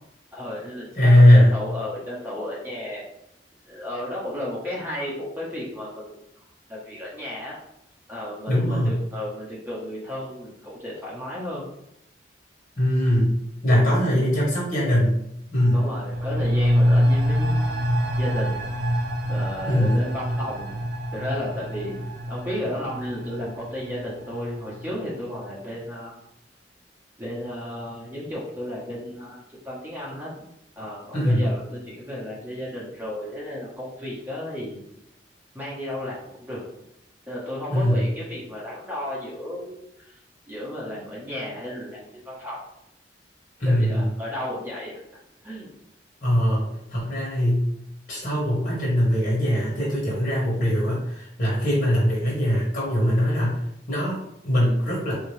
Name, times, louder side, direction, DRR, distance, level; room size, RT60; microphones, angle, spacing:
voice 1, 0.3-3.0 3.6-6.2 6.7-7.6 8.1-11.6 14.1-14.3 15.7-17.7 18.2-18.6 19.3-20.7 21.1-22.0 22.3-26.1 27.2-29.4 29.6-30.3 30.8-34.8 35.5-36.6 37.3-40.1 40.5-42.6 43.6-45.0 45.4-45.7, left 1 dB, 10° right, -6 dB, 0.9 m, -33 dB
voice 2, 0.9-1.6 8.5-9.0 12.8-15.1 15.5-15.9 19.6-20.0 31.1-31.5 37.7-38.1 43.6-44.1 46.2-47.7 48.1-53.6 53.9-55.1, equal, 55° left, -6 dB, 1.4 m, -20 dB
sound 1, 15.6-25.0 25.3-25.4, equal, 75° right, 0.6 m, -25 dB
3.9 x 2.8 x 3.2 m, 0.80 s
head